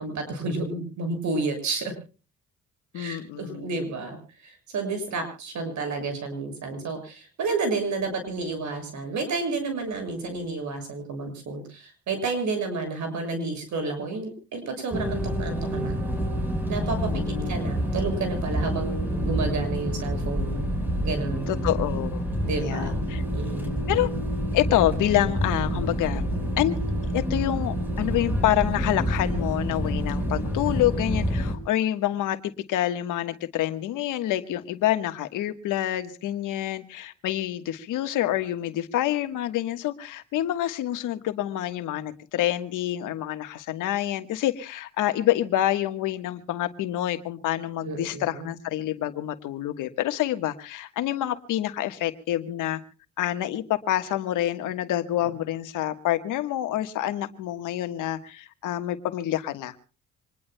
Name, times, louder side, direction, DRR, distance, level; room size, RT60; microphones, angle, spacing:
voice 1, 0.0-1.9 2.9-4.2 4.4-16.0 16.7-17.1 17.5-20.7 21.0-21.5 22.4-23.0 23.3-23.7 47.8-48.5, right 3 dB, 70° right, 6 dB, 6.8 m, -30 dB
voice 2, 2.9-3.7 17.0-17.6 21.5-22.2 22.6-23.2 23.9-24.1 24.5-26.2 26.6-26.8 27.1-52.8 53.2-59.7, left 13 dB, 90° left, 9 dB, 1.4 m, -27 dB
sound 1, 14.9-31.6, equal, 5° right, 4.8 m, -28 dB
26.0 x 20.5 x 2.2 m, 0.36 s
cardioid pair, 90°, 30 cm